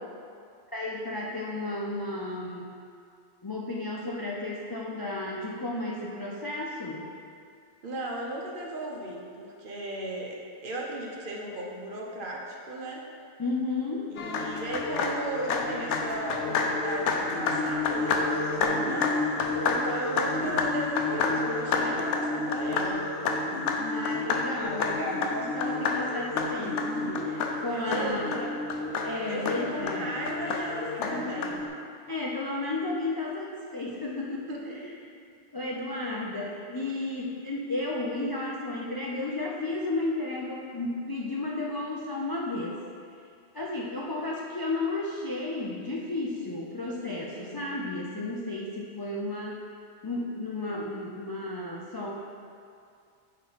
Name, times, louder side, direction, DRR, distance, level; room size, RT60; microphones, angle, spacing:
voice 1, 0.7-2.7 3.4-7.1 13.4-14.1 23.8-28.4 29.0-30.1 31.0-31.3 32.1-35.0 35.5-42.8 43.5-49.6 50.0-52.1, left 2 dB, 40° left, -4 dB, 0.3 m, -33 dB
voice 2, 7.8-13.1 14.1-19.1 19.7-23.1 27.7-28.6 29.3-31.8 34.5-34.9 36.4-36.8 47.3-47.7, right 1 dB, 50° right, -2 dB, 0.9 m, -36 dB
sound 1, 14.2-31.7, left 3 dB, 90° left, 0.9 m, -29 dB
9.5 x 3.2 x 4.0 m, 2.4 s
omnidirectional pair, 1.2 m